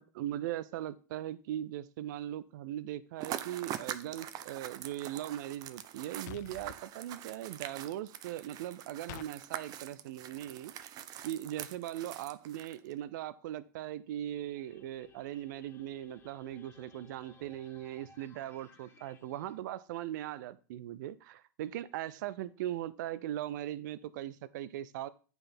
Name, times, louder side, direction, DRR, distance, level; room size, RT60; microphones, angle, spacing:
voice 1, 0.0-10.9 11.2-25.1, right 12 dB, 70° right, 0.6 m, -39 dB
sound 1, 3.2-12.9, right 11 dB, 40° right, 0.7 m, -44 dB
sound 2, 6.3-6.8 9.1-9.3, left 16 dB, 65° left, 0.5 m, -46 dB
sound 3, 14.0-19.5, left 5 dB, 20° left, 1.0 m, -60 dB
8.8 x 5.5 x 4.4 m
supercardioid pair, 125°, 11 cm